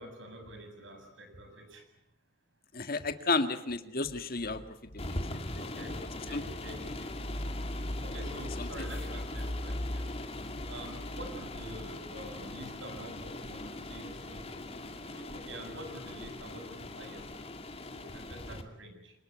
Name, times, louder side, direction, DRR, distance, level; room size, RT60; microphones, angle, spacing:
voice 1, 0.0-1.8 5.6-7.1 8.0-10.1 10.7-14.7 15.1-17.2 17.9-19.1, right 1 dB, 75° right, 6 dB, 7.2 m, -47 dB
voice 2, 2.7-4.6 4.9-5.5 6.3-6.4 8.6-8.7, left 3 dB, 50° left, 8 dB, 2.0 m, -32 dB
sound 1, 4.0-10.4, equal, 80° left, 5.4 m, -51 dB
sound 2, 5.0-18.6, left 1 dB, 30° left, 2.4 m, -39 dB
27.0 x 20.0 x 9.4 m, 0.86 s
head